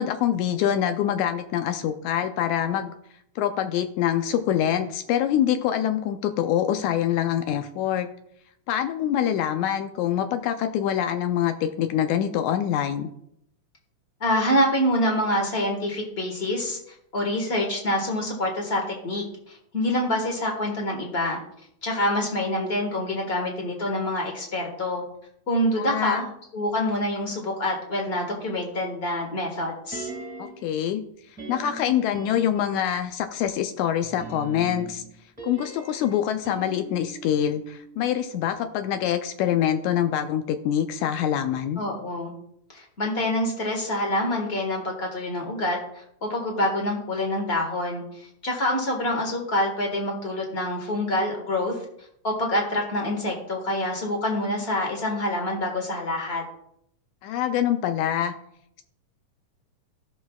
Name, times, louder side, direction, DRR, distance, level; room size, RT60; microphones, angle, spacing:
voice 1, 0.0-2.9 3.4-8.1 8.7-13.1 25.8-26.3 30.6-31.0 31.5-35.0 35.4-41.8 57.2-58.3, left 10 dB, 80° left, 8 dB, 1.7 m, -25 dB
voice 2, 14.2-16.8 17.1-21.4 21.8-25.0 25.5-30.1 41.8-42.3 42.7-51.8 52.2-56.4, left 1 dB, 35° left, 1 dB, 0.9 m, -26 dB
sound 1, 29.9-30.7 31.4-33.0 34.0-38.2 38.5-38.6, right 3 dB, 5° right, 1.0 m, -41 dB
16.0 x 6.3 x 2.3 m, 0.73 s
omnidirectional pair, 3.7 m